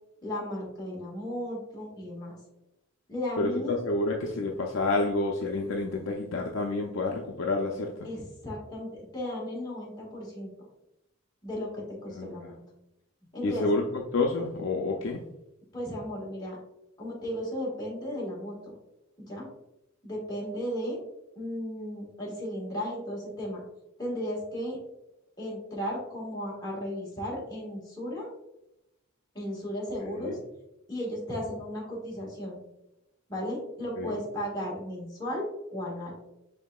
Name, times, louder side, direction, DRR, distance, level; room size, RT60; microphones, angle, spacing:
voice 1, 0.2-2.4 3.1-3.8 8.0-10.5 11.4-12.6 13.3-13.7 15.7-16.6 17.0-18.7 19.2-19.5 20.0-21.0 21.3-23.6 24.0-24.8 25.4-28.3 29.3-30.4 30.9-32.6 33.3-36.1, equal, 20° left, -4 dB, 1.5 m, -35 dB
voice 2, 3.4-7.9 12.2-12.5 13.4-13.8 14.1-15.2 30.2-30.4 34.0-34.2, left 2 dB, 65° left, 1 dB, 0.5 m, -29 dB
5.6 x 3.6 x 2.3 m, 0.87 s
head